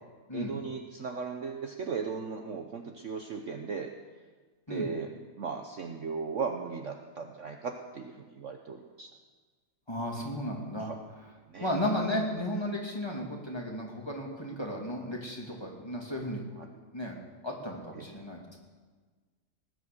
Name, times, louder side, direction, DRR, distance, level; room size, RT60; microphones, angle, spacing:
voice 1, 0.3-3.9 4.7-5.1 5.4-9.1 10.8-11.0 11.5-11.7 16.6-16.7 18.0-18.1, right 5 dB, 55° right, 4 dB, 1.1 m, -37 dB
voice 2, 9.9-10.9 11.6-17.2 17.4-18.6, left 1 dB, 15° left, -1 dB, 2.3 m, -34 dB
19.0 x 9.9 x 6.7 m, 1.4 s
omnidirectional pair, 1.8 m